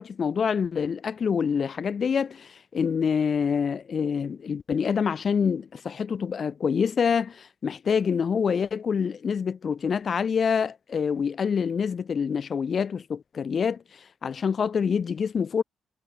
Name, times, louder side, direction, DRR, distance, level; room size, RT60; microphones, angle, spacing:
voice 1, 0.0-13.8 14.2-15.6, left 6 dB, 45° left, 1.6 m, -26 dB
cardioid pair, 90°, 0 cm